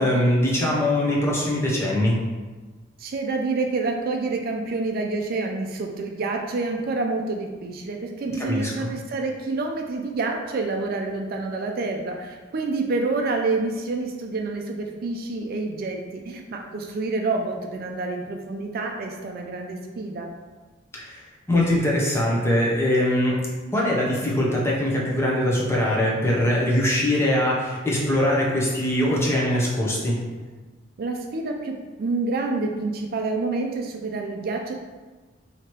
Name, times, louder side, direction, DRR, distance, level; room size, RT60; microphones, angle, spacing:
voice 1, 0.0-2.2 8.4-8.9 20.9-21.2 21.5-23.3 23.7-30.2, left 1 dB, 15° left, -5 dB, 0.8 m, -22 dB
voice 2, 3.0-20.3 31.0-34.7, right 3 dB, 50° right, 2 dB, 0.4 m, -28 dB
3.1 x 2.8 x 4.5 m, 1.3 s
head